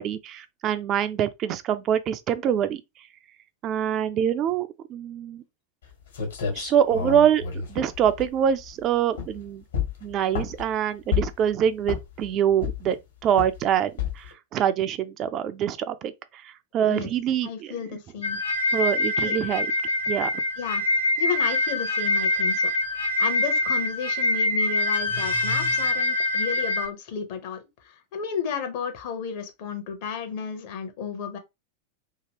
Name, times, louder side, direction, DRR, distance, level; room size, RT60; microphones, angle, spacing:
voice 1, 0.0-2.8 3.6-5.4 6.6-7.4 7.7-9.6 10.0-13.0 13.2-13.9 14.5-16.1 16.7-17.7 18.7-19.7 20.1-20.3, right 9 dB, 35° right, 0.3 m, -24 dB
sound 1, 5.8-5.9 6.1-8.7 9.1-9.4 9.7-10.7 11.1-11.5 11.8-12.2 12.6-13.0 13.4-13.6 14.0-14.3, left 7 dB, 65° left, 1.4 m, -29 dB
voice 2, 17.4-18.4 19.2-19.4 20.6-20.8 21.2-31.4, left 7 dB, 50° left, 0.8 m, -33 dB
sound 2, 18.2-26.9, left 2 dB, 80° left, 1.1 m, -25 dB
2.9 x 2.7 x 2.9 m
figure-of-eight pair, 90°, 0 cm